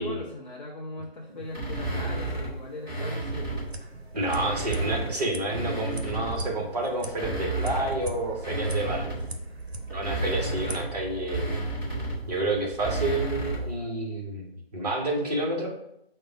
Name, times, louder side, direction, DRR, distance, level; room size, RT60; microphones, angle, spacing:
voice 1, 0.0-3.5, left 2 dB, 45° left, -2 dB, 0.6 m, -39 dB
sound 1, 1.5-3.7 4.1-6.6 7.0-13.8, right 2 dB, 10° right, 1.0 m, -32 dB
sound 2, 3.4-10.8, right 1 dB, 85° right, 0.7 m, -41 dB
voice 2, 4.1-9.2 9.9-11.5 12.3-15.7, right 2 dB, 40° right, -1 dB, 1.1 m, -29 dB
4.8 x 2.2 x 4.6 m, 0.81 s
figure-of-eight pair, 150°, 31 cm